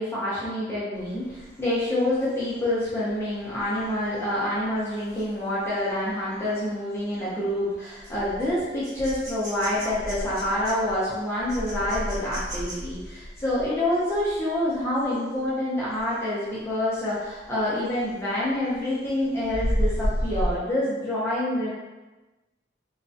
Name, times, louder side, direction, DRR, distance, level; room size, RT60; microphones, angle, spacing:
voice 1, 0.0-21.7, left 1 dB, 15° left, -9 dB, 0.4 m, -27 dB
sound 1, 1.0-15.5 15.9-16.2 16.5-18.2 18.6-20.6, equal, 60° right, 1.1 m, -34 dB
2.3 x 2.1 x 2.5 m, 1.1 s
head